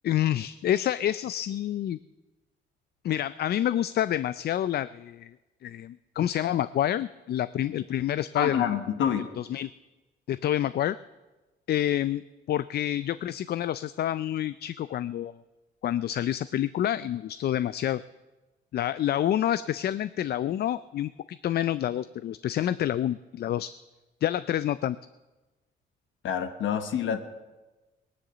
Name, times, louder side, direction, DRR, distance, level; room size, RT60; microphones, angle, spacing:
voice 1, 0.0-2.0 3.0-5.3 5.6-8.7 9.4-9.7 10.3-11.0 11.7-12.2 12.5-15.3 15.8-18.0 18.7-23.7 24.2-25.0, left 11 dB, 55° left, 16 dB, 0.4 m, -28 dB
voice 2, 8.3-9.3 26.2-27.2, left 8 dB, 75° left, 9 dB, 1.2 m, -27 dB
17.5 x 11.5 x 6.8 m, 1.1 s
cardioid pair, 90°, 20 cm